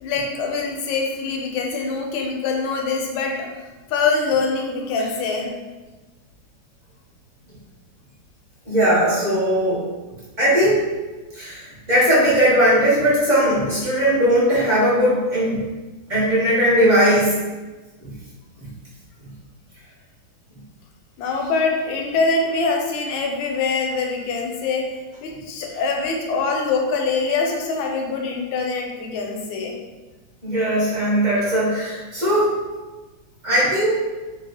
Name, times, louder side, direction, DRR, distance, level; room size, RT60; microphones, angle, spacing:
voice 1, 0.0-3.5 3.9-5.5 21.2-24.9 25.2-29.8, left 4 dB, 85° left, 1 dB, 1.4 m, -24 dB
voice 2, 8.6-9.8 10.4-10.9 11.3-15.6 16.1-17.4 18.0-18.1 18.6-18.7 30.4-32.5 33.4-34.0, equal, 30° right, -10 dB, 0.8 m, -18 dB
3.1 x 2.3 x 3.4 m, 1.2 s
omnidirectional pair, 2.2 m